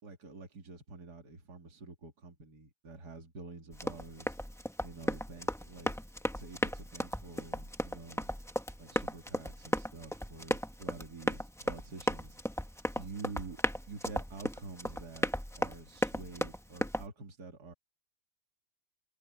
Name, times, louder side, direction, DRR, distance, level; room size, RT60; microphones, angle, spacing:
voice 1, 0.0-4.4 4.8-6.0 6.3-8.3 8.8-12.4 13.0-15.3 15.6-17.7, right 4 dB, 60° right, 3.2 m, -48 dB
Run, 3.7-17.1, equal, 5° left, 0.5 m, -36 dB
omnidirectional pair, 1.9 m